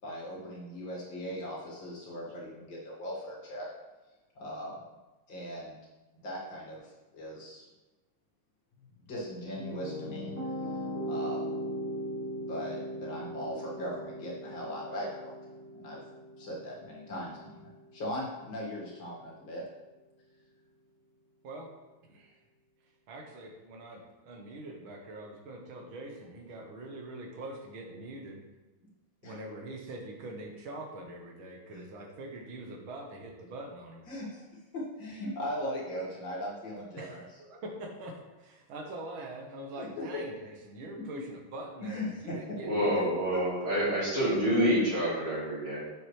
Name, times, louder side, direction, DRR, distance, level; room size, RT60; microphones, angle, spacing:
voice 1, 0.0-3.7 4.4-4.8 5.3-5.8 6.2-7.6 9.1-10.3 11.1-11.6 12.5-15.4 15.7-16.0 16.4-19.6 29.2-29.4 31.7-31.8 34.1-34.4 34.7-37.2 39.8-40.2 41.1-41.3 41.8-42.4 43.3-43.4, equal, 70° left, -5 dB, 2.8 m, -39 dB
sound 1, 9.2-18.3, equal, 10° left, 2.1 m, -39 dB
voice 2, 23.1-28.4 29.2-34.0 37.0-43.1, right 1 dB, 80° right, 1 dB, 2.0 m, -43 dB
voice 3, 42.6-45.8, equal, 40° right, -13 dB, 3.4 m, -27 dB
7.8 x 6.8 x 3.3 m, 1.1 s
omnidirectional pair, 2.2 m